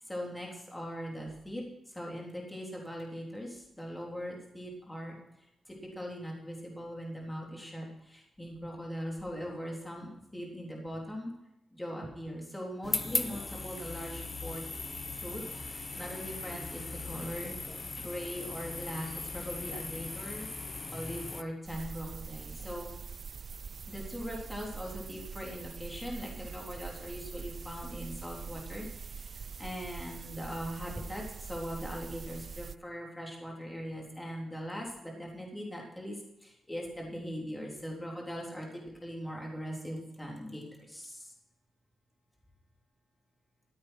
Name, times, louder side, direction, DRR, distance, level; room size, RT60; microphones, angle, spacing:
voice 1, 0.0-1.6 1.9-5.2 5.7-11.3 11.7-14.6 15.2-15.4 15.7-20.5 20.9-22.9 23.9-41.3, equal, 10° left, -2 dB, 3.7 m, -40 dB
sound 1, 12.8-21.4, left 3 dB, 25° left, 0.9 m, -38 dB
sound 2, 21.6-32.8, right 5 dB, 45° right, 0.4 m, -44 dB
14.5 x 8.5 x 6.1 m, 0.86 s
wide cardioid pair, 125°, 0 cm